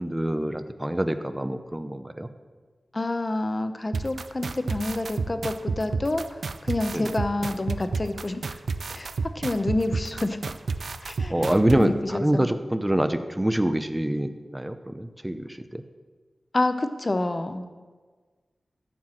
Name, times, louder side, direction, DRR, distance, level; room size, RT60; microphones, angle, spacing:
voice 1, 0.0-2.3 6.9-7.1 11.3-15.8, right 1 dB, 10° right, 9 dB, 0.6 m, -26 dB
voice 2, 2.9-8.4 8.9-10.4 11.1-11.5 11.7-12.5 16.5-17.7, left 2 dB, 35° left, 9 dB, 0.7 m, -28 dB
sound 1, 3.9-11.8, right 4 dB, 85° right, 0.4 m, -30 dB
13.5 x 4.6 x 7.6 m, 1.4 s
wide cardioid pair, 110°, 0 cm